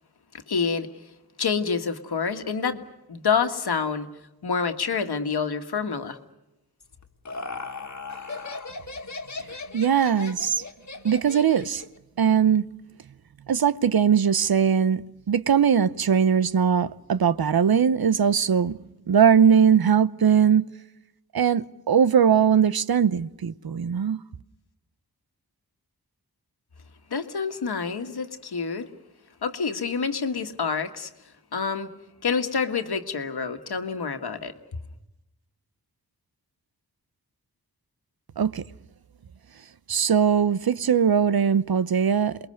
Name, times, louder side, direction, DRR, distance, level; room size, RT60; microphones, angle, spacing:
voice 1, 0.5-0.9 1.4-2.8 3.1-4.1 4.4-6.2 27.1-28.9 29.4-31.1 31.5-31.9 32.2-34.5, left 5 dB, 90° left, 1.7 m, -27 dB
Laughter, 6.8-12.0, left 3 dB, 45° left, 1.9 m, -37 dB
voice 2, 9.7-10.6 11.0-11.8 12.2-12.6 13.5-18.8 19.1-20.6 21.3-24.2 38.4-38.6 39.9-42.4, right 7 dB, 70° right, 0.9 m, -20 dB
28.0 x 22.0 x 6.6 m
wide cardioid pair, 75°, 38 cm